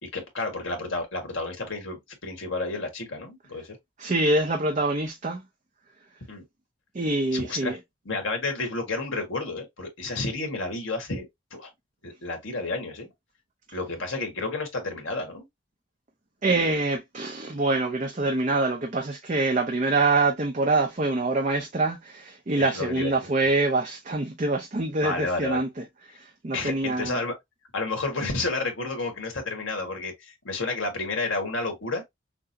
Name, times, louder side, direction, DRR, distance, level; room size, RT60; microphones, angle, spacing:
voice 1, 0.0-3.8 6.3-6.4 7.3-7.8 8.0-11.7 12.0-13.1 13.7-15.5 22.6-23.1 25.0-25.6 26.5-27.3 27.7-32.0, left 3 dB, 80° left, 1.5 m, -31 dB
voice 2, 4.0-5.4 6.9-7.8 16.4-27.2, right 2 dB, 40° right, 0.6 m, -25 dB
5.9 x 2.0 x 2.7 m
head